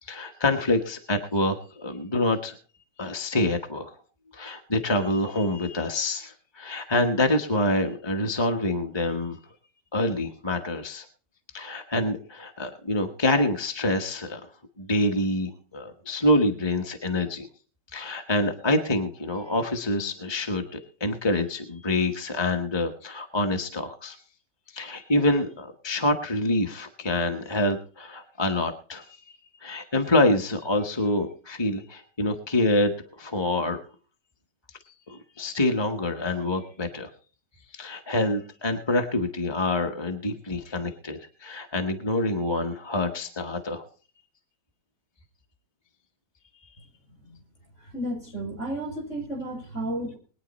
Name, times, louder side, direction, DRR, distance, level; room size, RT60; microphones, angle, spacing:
voice 1, 0.0-2.6 3.0-3.9 4.3-9.4 9.9-11.0 11.5-14.4 14.8-17.5 17.9-24.2 24.7-29.0 29.6-33.8 35.1-37.1 37.7-43.8, left 1 dB, 20° left, 3 dB, 1.1 m, -26 dB
voice 2, 47.8-50.2, right 1 dB, 45° left, 3 dB, 6.4 m, -32 dB
21.5 x 9.4 x 4.2 m, 0.38 s
omnidirectional pair, 1.8 m